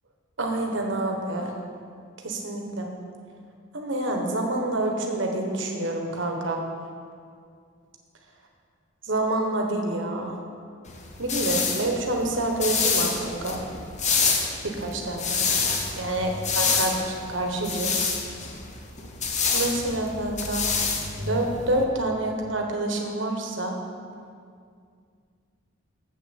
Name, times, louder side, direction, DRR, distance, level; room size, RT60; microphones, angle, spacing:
voice 1, 0.4-1.5 2.2-2.9 3.7-6.6 9.0-10.4 11.2-13.6 14.6-15.4 15.9-18.1 19.5-20.7 21.2-23.8, right 1 dB, 65° right, 2 dB, 1.3 m, -27 dB
sound 1, 10.9-21.8, left 5 dB, 35° left, 0.8 m, -27 dB
7.5 x 6.6 x 7.2 m, 2.2 s
head